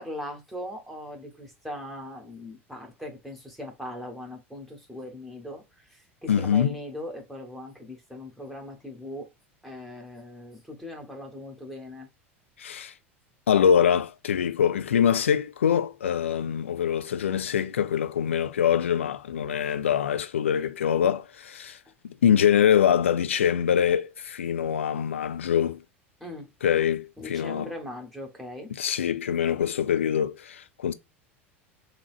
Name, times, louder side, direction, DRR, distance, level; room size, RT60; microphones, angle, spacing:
voice 1, 0.0-9.3 9.6-12.1 26.2-26.5 27.2-28.7, left 1 dB, ahead, 1.4 m, -40 dB
voice 2, 6.3-6.8 12.6-12.9 13.5-21.8 22.0-25.8 26.6-27.7 28.7-30.9, left 8 dB, 70° left, 0.4 m, -24 dB
3.7 x 2.9 x 2.4 m
figure-of-eight pair, 80°, 7 cm